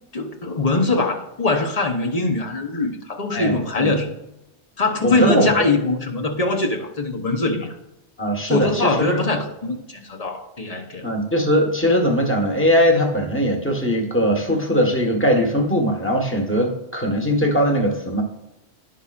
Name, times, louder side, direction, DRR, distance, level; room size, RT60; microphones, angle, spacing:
voice 1, 0.1-4.2 4.8-7.7 8.5-11.0, left 3 dB, 35° left, 3 dB, 1.0 m, -22 dB
voice 2, 3.3-3.9 5.0-5.5 8.2-9.2 11.0-18.2, equal, 10° left, 2 dB, 1.3 m, -20 dB
15.5 x 5.5 x 2.5 m, 0.94 s
omnidirectional pair, 1.1 m